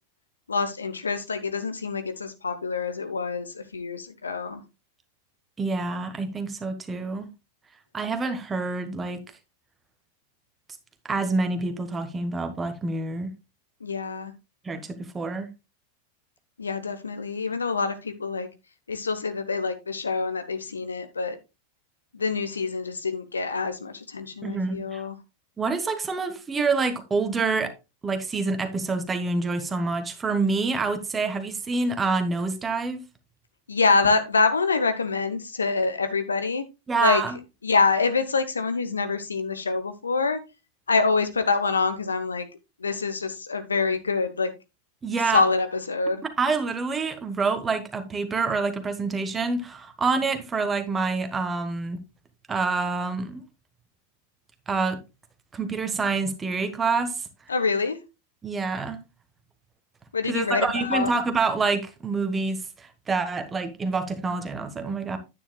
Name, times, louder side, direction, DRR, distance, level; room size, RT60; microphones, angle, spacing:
voice 1, 0.5-4.6 13.8-14.3 16.6-18.5 18.9-21.4 22.1-25.2 33.7-36.6 37.0-37.2 37.6-40.4 40.9-42.5 42.8-44.5 45.3-46.2 57.5-58.0 60.1-61.1, left 4 dB, 75° left, 1.0 m, -26 dB
voice 2, 5.6-7.3 7.9-9.2 11.0-13.3 14.6-15.5 24.4-25.0 25.6-27.7 28.0-33.0 36.9-37.4 45.0-45.4 46.2-52.0 52.5-53.4 54.7-55.0 55.5-57.1 58.4-59.0 60.3-65.2, right 4 dB, 15° right, 1.3 m, -27 dB
9.8 x 9.4 x 2.3 m
figure-of-eight pair, 90°, 0 cm